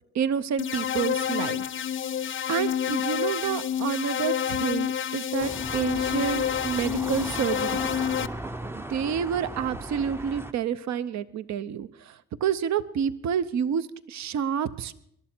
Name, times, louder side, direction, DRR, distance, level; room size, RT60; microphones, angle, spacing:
voice 1, 0.1-1.6 2.5-7.8 8.7-12.1 12.4-15.0, right 8 dB, 65° right, 14 dB, 0.8 m, -29 dB
sound 1, 0.6-8.3, left 9 dB, 40° left, 0.6 m, -28 dB
sound 2, 5.4-10.5, right 1 dB, 10° right, 0.5 m, -37 dB
21.0 x 12.0 x 4.5 m, 0.72 s
cardioid pair, 90°, 30 cm